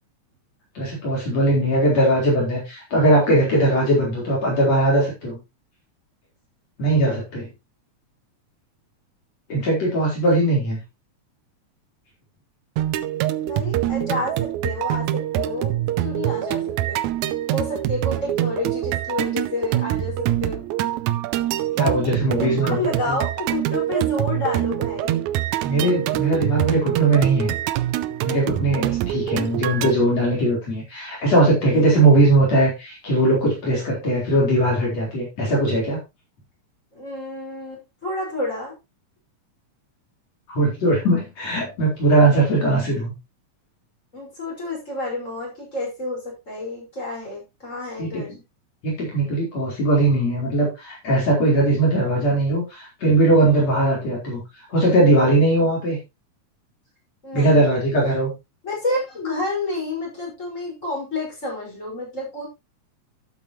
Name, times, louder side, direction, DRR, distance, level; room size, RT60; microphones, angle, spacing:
voice 1, 0.8-5.4 6.8-7.5 9.5-10.8 21.8-23.2 25.6-27.5 28.2-36.0 40.5-43.1 48.0-48.2 48.8-54.4 54.7-56.0 57.3-58.3, right 2 dB, 60° left, -4 dB, 5.3 m, -19 dB
sound 1, 12.8-29.9, right 13 dB, 80° right, 2.0 m, -25 dB
voice 2, 13.4-17.0 17.5-20.6 22.3-25.2 31.8-31.9 36.9-38.7 44.1-48.3 57.2-57.7 58.6-62.5, left 2 dB, 25° left, -2 dB, 6.2 m, -29 dB
12.5 x 7.9 x 3.1 m, 0.24 s
omnidirectional pair, 3.4 m